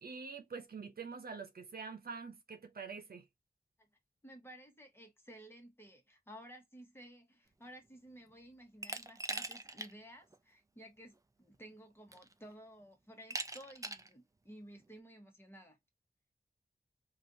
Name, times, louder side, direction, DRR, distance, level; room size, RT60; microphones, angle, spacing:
voice 1, 0.0-3.2, right 5 dB, 80° right, 0.8 m, -46 dB
voice 2, 4.2-15.8, equal, 15° left, 1.3 m, -55 dB
Glass, 8.8-9.9 10.3-10.4 11.5-11.6 12.1-12.5 13.3-14.1, right 2 dB, 20° right, 0.5 m, -41 dB
3.3 x 2.6 x 2.7 m
wide cardioid pair, 95°, 15 cm